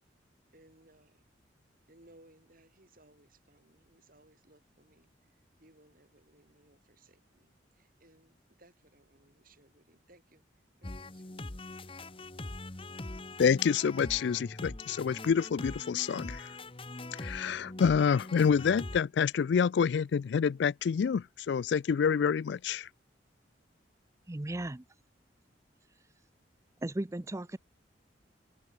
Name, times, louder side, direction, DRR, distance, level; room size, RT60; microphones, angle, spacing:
voice 1, 0.5-1.2 1.9-10.4 10.8-11.5, right 1 dB, 50° right, 6.9 m, -63 dB
sound 1, 10.8-19.0, left 2 dB, 30° left, 1.1 m, -42 dB
voice 2, 13.4-16.5 17.2-22.9, left 6 dB, 65° left, 0.3 m, -27 dB
voice 3, 24.3-24.8 25.9-26.0 26.8-27.6, right 1 dB, 15° right, 0.5 m, -36 dB
open air
head